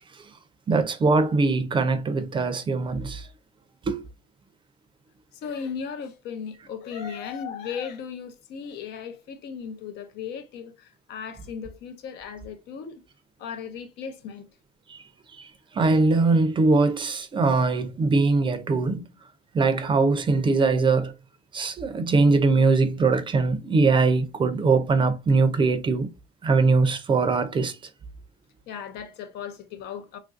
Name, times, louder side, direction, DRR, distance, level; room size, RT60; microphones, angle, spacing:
voice 1, 0.7-3.3 3.9-4.0 14.9-15.0 15.4-19.0 19.5-21.1 21.5-26.1 26.4-27.8, right 3 dB, 30° right, 0.4 m, -22 dB
voice 2, 5.3-13.0 13.4-14.5 28.7-30.2, left 7 dB, 80° left, 0.6 m, -36 dB
3.0 x 2.5 x 2.4 m
cardioid pair, 110°, 17 cm